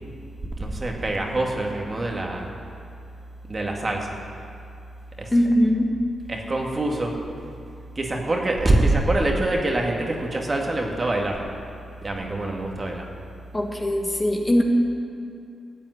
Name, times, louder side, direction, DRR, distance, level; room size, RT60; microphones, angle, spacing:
voice 1, 0.6-2.5 3.5-4.2 5.2-5.3 6.3-7.2 8.0-11.5 12.0-13.1, right 2 dB, 35° right, 1 dB, 2.1 m, -25 dB
voice 2, 5.3-6.0 13.5-14.6, equal, 20° left, 2 dB, 1.6 m, -21 dB
13.0 x 7.4 x 9.5 m, 2.5 s
cardioid pair, 60°, 0 cm